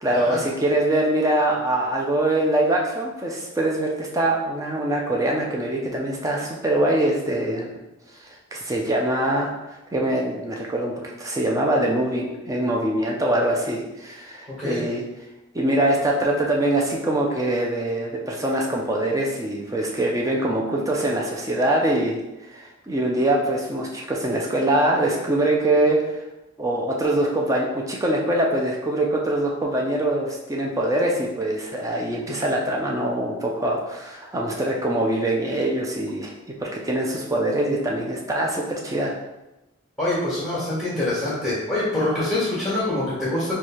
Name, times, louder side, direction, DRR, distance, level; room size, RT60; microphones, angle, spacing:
voice 1, 0.0-7.8 8.5-9.5 9.9-10.9 11.2-15.0 15.5-22.2 22.5-26.2 26.6-36.3 36.6-39.1, right 1 dB, 15° right, -1 dB, 0.4 m, -23 dB
voice 2, 40.0-43.5, left 1 dB, ahead, -11 dB, 1.2 m, -25 dB
3.2 x 2.3 x 4.3 m, 0.97 s
head